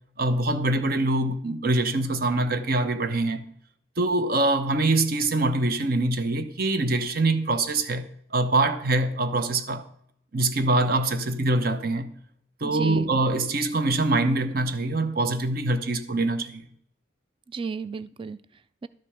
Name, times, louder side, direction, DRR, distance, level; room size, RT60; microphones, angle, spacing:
voice 1, 0.2-3.4 4.0-9.8 10.3-12.1 12.6-16.6, right 2 dB, 50° right, 0.8 m, -24 dB
voice 2, 12.6-13.2 17.5-18.9, right 5 dB, 25° right, 0.3 m, -35 dB
12.0 x 5.2 x 5.7 m
head